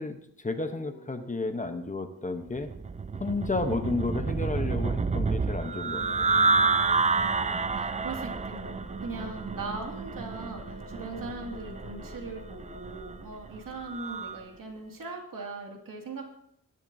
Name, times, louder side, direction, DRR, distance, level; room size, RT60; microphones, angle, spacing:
voice 1, 0.0-2.7 3.1-6.0, left 3 dB, 25° left, 7 dB, 0.9 m, -32 dB
sound 1, 0.6-4.2 4.8-15.4, left 6 dB, 75° left, 4.9 m, -50 dB
sound 2, 2.6-14.4, right 4 dB, 20° right, 0.4 m, -29 dB
voice 2, 7.1-16.2, right 3 dB, 75° right, 1 dB, 2.3 m, -40 dB
20.0 x 10.5 x 2.7 m, 0.72 s
wide cardioid pair, 125°, 33 cm